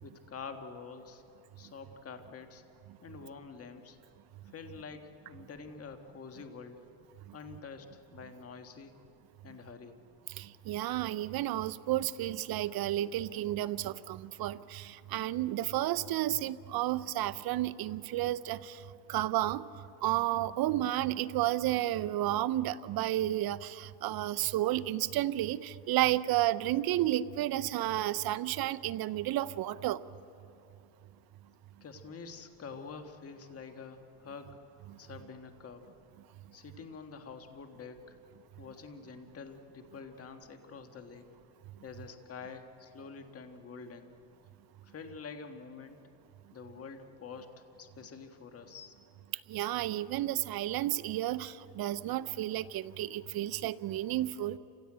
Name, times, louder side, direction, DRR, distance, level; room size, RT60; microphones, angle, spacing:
voice 1, 0.0-1.2 1.6-2.6 3.0-4.0 4.5-6.8 7.3-8.9 9.4-10.0 31.8-34.6 35.0-35.8 36.5-38.2 38.6-41.2 41.8-44.2 44.8-46.0 46.5-47.5 47.8-48.9, left 5 dB, 30° left, 6 dB, 1.7 m, -47 dB
voice 2, 10.3-18.8 19.1-19.6 20.0-30.0 34.9-35.0 49.5-54.6, right 14 dB, 50° right, 14 dB, 0.8 m, -32 dB
29.0 x 16.0 x 9.0 m, 2.8 s
supercardioid pair, 110°, 46 cm